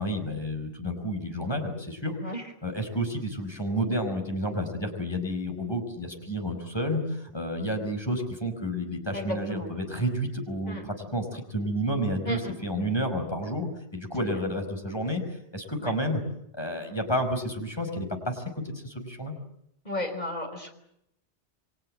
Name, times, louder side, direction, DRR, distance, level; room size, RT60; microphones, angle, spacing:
voice 1, 0.0-2.2 2.6-16.2 16.5-19.3, equal, 20° left, 5 dB, 5.1 m, -30 dB
voice 2, 2.2-2.5 9.1-9.7 10.7-10.8 12.3-12.6 14.3-14.4 15.8-15.9 19.8-20.7, left 1 dB, 40° left, 5 dB, 5.1 m, -34 dB
29.5 x 23.0 x 7.7 m, 0.80 s
omnidirectional pair, 1.2 m